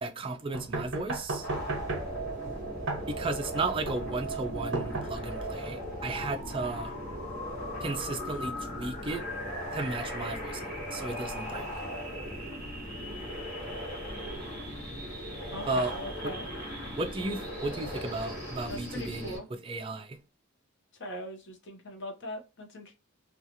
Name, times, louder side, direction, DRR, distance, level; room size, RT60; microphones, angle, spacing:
voice 1, 0.0-1.5 3.1-7.0 7.8-9.2 9.7-11.7 15.7-15.9 16.2-16.3 17.0-20.2, right 3 dB, 25° right, 0.3 m, -34 dB
sound 1, 0.5-5.5, right 2 dB, 60° right, 0.6 m, -36 dB
sound 2, 1.4-19.4, equal, 10° left, 1.2 m, -37 dB
voice 2, 15.5-16.4 18.7-19.4 21.0-22.9, equal, 55° left, 0.7 m, -40 dB
2.8 x 2.3 x 2.6 m
head